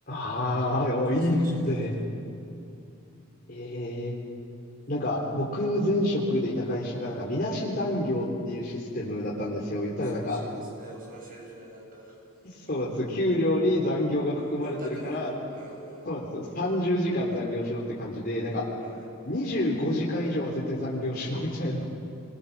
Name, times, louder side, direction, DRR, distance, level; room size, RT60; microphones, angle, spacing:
voice 1, 0.1-1.9 3.5-4.1 4.9-10.4 12.6-15.3 16.0-18.6 19.2-21.8, left 1 dB, 40° left, -6 dB, 3.7 m, -28 dB
voice 2, 0.9-1.8 9.9-12.2 12.5-12.6 14.4-16.1 17.4-17.5 18.8-19.1, right 2 dB, 40° right, -2 dB, 7.5 m, -45 dB
29.0 x 23.5 x 7.4 m, 2.7 s
head